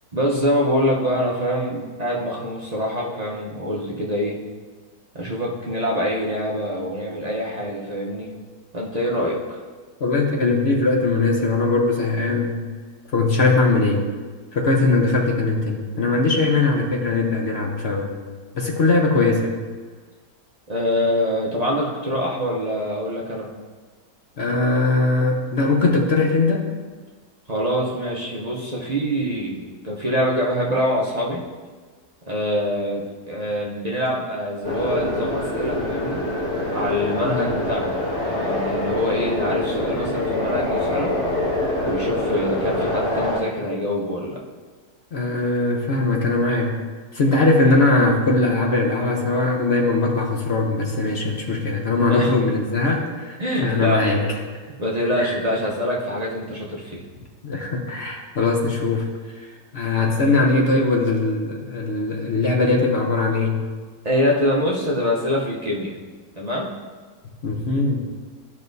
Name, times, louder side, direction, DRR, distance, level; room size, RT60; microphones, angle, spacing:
voice 1, 0.1-4.4 5.1-8.3 8.7-9.6 20.7-23.5 27.5-31.4 32.3-36.2 36.7-38.0 38.2-41.1 41.8-44.4 52.1-52.3 53.4-54.0 54.8-57.0 64.0-65.9 66.4-66.7, equal, 40° right, -4 dB, 0.6 m, -24 dB
voice 2, 10.0-12.6 13.1-14.1 14.5-18.1 18.5-19.5 24.4-26.7 37.2-37.5 45.1-46.8 47.1-54.2 55.2-55.4 57.4-59.1 59.4-63.6 67.4-68.0, left 3 dB, 55° left, 1 dB, 0.8 m, -20 dB
sound 1, 34.6-43.4, left 1 dB, 10° left, 1.9 m, -25 dB
12.0 x 5.5 x 2.7 m, 1.4 s
omnidirectional pair, 1.9 m